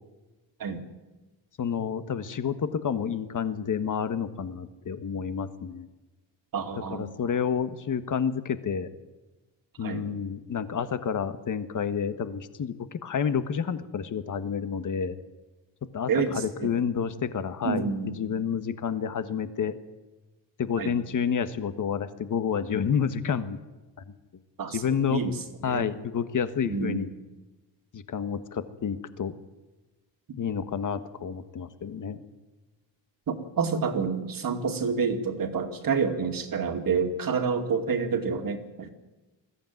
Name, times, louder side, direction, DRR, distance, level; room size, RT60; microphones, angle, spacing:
voice 1, 1.6-5.9 6.9-8.9 9.8-15.2 15.8-19.8 20.6-23.6 24.7-25.2 25.6-27.1 27.9-29.3 30.4-32.2, left 7 dB, 45° left, 11 dB, 1.5 m, -29 dB
voice 2, 6.5-7.1 9.8-10.0 16.1-16.7 17.6-18.1 20.8-21.0 24.6-24.8 25.1-25.3 25.6-25.9 26.6-27.0 33.3-38.9, right 5 dB, 45° right, 5 dB, 2.5 m, -28 dB
21.0 x 14.5 x 9.4 m, 1.1 s
cardioid pair, 115°, 45 cm